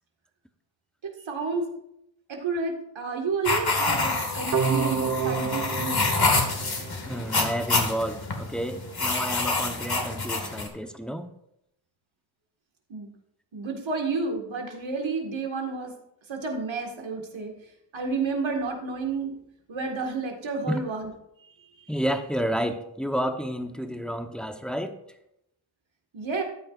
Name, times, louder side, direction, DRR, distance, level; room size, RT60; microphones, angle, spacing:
voice 1, 1.3-1.7 2.3-6.0 12.9-13.1 13.5-15.9 16.3-17.5 17.9-19.3 19.7-21.1 21.6-21.9 26.1-26.4, right 4 dB, 80° right, 2.0 m, -30 dB
sound 1, 3.4-10.7, left 3 dB, 55° left, 2.0 m, -27 dB
sound 2, 4.5-7.5, right 6 dB, 35° right, 0.8 m, -29 dB
voice 2, 7.1-11.3 20.6-20.8 21.9-25.0, equal, ahead, 1.0 m, -30 dB
13.5 x 8.9 x 2.6 m
cardioid pair, 55°, 45 cm